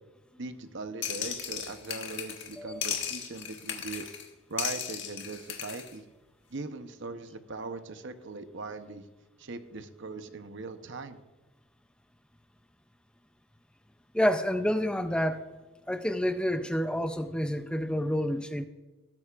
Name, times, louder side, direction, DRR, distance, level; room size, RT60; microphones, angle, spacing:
voice 1, 0.4-4.1 4.5-6.0 6.5-9.1 9.4-11.2, right 3 dB, 55° right, 9 dB, 0.8 m, -40 dB
sound 1, 1.0-2.5 2.8-4.2 4.6-5.9, left 8 dB, 55° left, 1.5 m, -36 dB
voice 2, 2.5-2.8 14.1-15.4 15.9-18.7, equal, 5° left, 9 dB, 0.4 m, -28 dB
18.5 x 9.1 x 2.5 m, 1.2 s
head